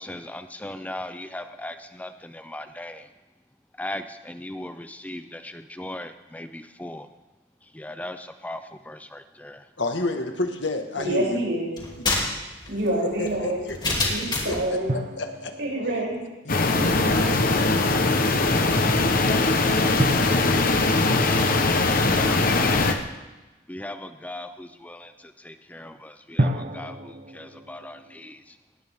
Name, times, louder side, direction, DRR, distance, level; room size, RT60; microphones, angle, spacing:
voice 1, 0.0-3.1 3.8-7.1 7.6-9.7 22.2-22.9 23.7-28.6, left 1 dB, 10° left, 9 dB, 0.6 m, -38 dB
voice 2, 9.8-11.4 13.2-14.1 14.4-14.6 15.2-15.5 16.5-16.6, left 2 dB, 80° left, 5 dB, 1.9 m, -29 dB
voice 3, 11.0-11.7 12.7-13.6 14.1-14.9 15.6-16.2 16.6-17.4, right 1 dB, 70° right, -4 dB, 7.3 m, -27 dB
sound 1, 11.8-14.7, left 2 dB, 25° left, 3.0 m, -27 dB
sound 2, 14.9-17.1 20.0-22.9 26.4-28.3, right 1 dB, 45° right, 1.0 m, -32 dB
sound 3, 16.5-22.9, left 3 dB, 50° left, 1.2 m, -21 dB
19.0 x 18.5 x 3.7 m, 1.1 s
head